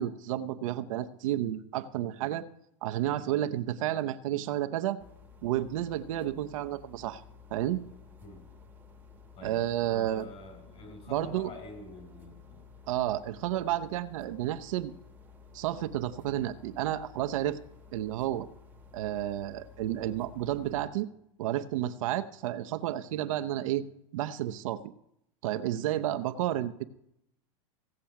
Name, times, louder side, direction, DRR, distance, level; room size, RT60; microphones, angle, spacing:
voice 1, 0.0-2.4 2.8-5.0 5.4-7.2 7.5-7.8 9.4-10.3 11.1-11.5 12.9-14.9 15.5-17.6 17.9-18.5 18.9-21.1 21.4-23.9 24.1-24.9 25.4-26.8, right 13 dB, 80° right, 10 dB, 0.8 m, -31 dB
sound 1, 5.0-20.9, left 5 dB, 10° right, 1.3 m, -54 dB
voice 2, 9.4-12.6, left 2 dB, 35° left, 4 dB, 5.0 m, -47 dB
16.5 x 7.7 x 5.8 m, 0.78 s
supercardioid pair, 130°, 17 cm